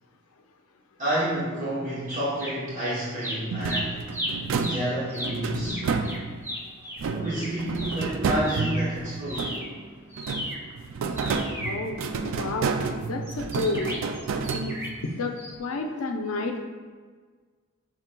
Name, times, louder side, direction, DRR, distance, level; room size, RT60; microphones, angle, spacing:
voice 1, 1.0-4.0 4.3-6.1 7.1-9.6, right 1 dB, 35° right, -9 dB, 0.9 m, -30 dB
sound 1, 2.1-2.9 3.2-8.9 9.2-12.5 13.2-15.1 15.4-15.5, equal, 10° right, 0.6 m, -35 dB
sound 2, 3.5-6.5 7.0-9.8 10.2-15.1, right 4 dB, 65° right, 0.3 m, -30 dB
voice 2, 11.6-12.0 12.3-12.7 13.1-13.9 14.5-14.8 15.1-16.6, left 3 dB, 75° left, 4 dB, 0.5 m, -30 dB
5.7 x 3.6 x 2.2 m, 1.5 s
head